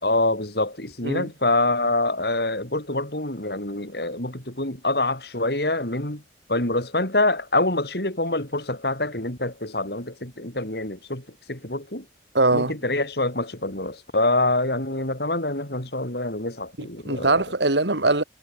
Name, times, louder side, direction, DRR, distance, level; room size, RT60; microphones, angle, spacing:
voice 1, 0.0-6.2 6.5-12.1 12.5-17.4, left 2 dB, 65° left, 5.3 m, -25 dB
voice 2, 12.3-12.7 16.8-18.2, right 2 dB, 80° right, 3.2 m, -22 dB
head